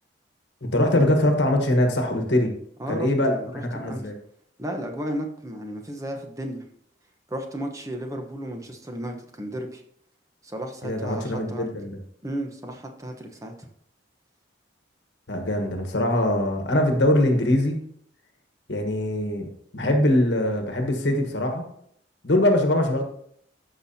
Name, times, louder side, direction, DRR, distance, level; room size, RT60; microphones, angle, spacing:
voice 1, 0.6-2.5 2.9-4.2 10.8-12.0 15.3-17.8 18.7-19.5 19.7-21.6 22.2-23.0, left 1 dB, 65° left, 3 dB, 1.3 m, -22 dB
voice 2, 2.8-4.1 4.6-6.6 7.3-9.8 10.4-11.6 12.2-13.7, right 1 dB, 15° right, 4 dB, 0.9 m, -34 dB
14.0 x 5.9 x 2.8 m, 0.68 s
head